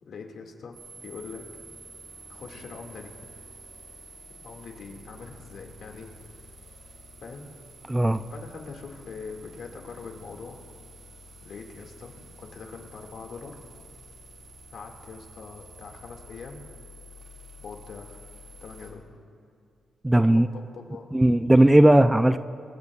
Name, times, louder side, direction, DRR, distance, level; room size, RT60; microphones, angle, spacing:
voice 1, 0.0-1.4 2.3-3.3 4.4-6.2 7.2-7.5 8.3-10.6 11.4-12.1 12.4-13.6 14.7-16.6 17.6-18.2 18.6-19.2 20.1-21.2, left 4 dB, 65° left, 2 dB, 2.1 m, -42 dB
sound 1, 0.7-18.9, right 1 dB, 60° right, 4.8 m, -49 dB
voice 2, 7.9-8.2 20.0-20.5 21.1-22.4, right 1 dB, 10° right, 11 dB, 0.4 m, -17 dB
26.0 x 16.0 x 2.4 m, 2.3 s
cardioid pair, 115°, 0 cm